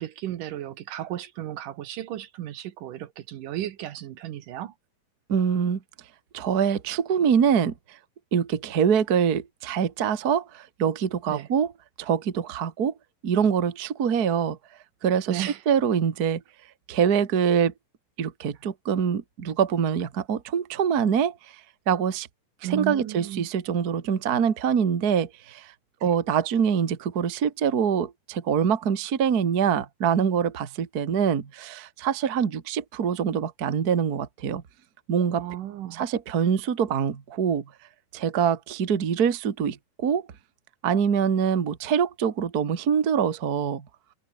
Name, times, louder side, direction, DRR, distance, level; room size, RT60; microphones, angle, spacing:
voice 1, 0.0-4.7 11.3-11.5 15.3-15.6 22.6-23.5 26.0-26.1 35.4-36.1, right 12 dB, 65° right, 2.4 m, -34 dB
voice 2, 5.3-5.8 6.3-8.0 8.3-11.7 12.0-12.9 13.2-14.6 15.0-16.4 16.9-17.7 18.2-21.4 21.9-22.3 22.6-25.7 26.0-34.6 35.1-35.4 35.9-37.6 38.1-40.2 40.8-43.8, right 7 dB, 85° right, 0.8 m, -24 dB
omnidirectional pair, 4.8 m